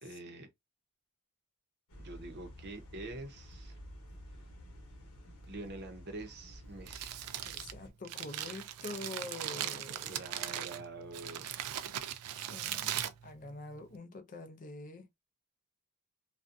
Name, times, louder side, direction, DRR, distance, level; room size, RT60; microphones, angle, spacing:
voice 1, 0.0-0.5 2.0-3.8 5.5-7.2 10.0-11.5, right 2 dB, 50° right, 0.7 m, -46 dB
sound 1, 1.9-7.9, equal, 70° left, 0.9 m, -51 dB
Crumpling crinkling, 6.7-14.0, right 11 dB, 75° right, 0.3 m, -40 dB
voice 2, 7.4-10.2 12.3-15.1, left 2 dB, 35° left, 0.4 m, -46 dB
2.5 x 2.2 x 2.5 m
head